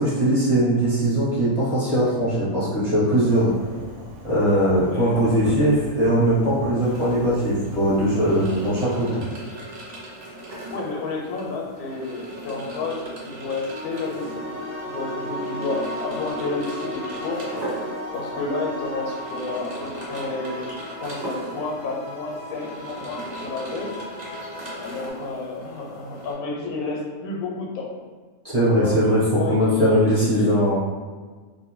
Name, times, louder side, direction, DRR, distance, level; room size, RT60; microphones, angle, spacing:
voice 1, 0.0-3.5 4.2-9.1 28.4-30.8, equal, 35° right, -11 dB, 0.8 m, -20 dB
Fireworks, 3.2-8.7, right 1 dB, 90° right, 1.1 m, -38 dB
voice 2, 4.8-5.3 10.7-17.4 18.1-24.0 24.8-27.9 28.8-30.1 30.4-30.5, left 3 dB, 90° left, -1 dB, 1.1 m, -31 dB
sound 1, 6.8-26.3, right 1 dB, 65° right, 0.4 m, -39 dB
sound 2, 13.7-25.1, left 1 dB, 60° left, 0.6 m, -35 dB
2.5 x 2.1 x 3.0 m, 1.4 s
omnidirectional pair, 1.5 m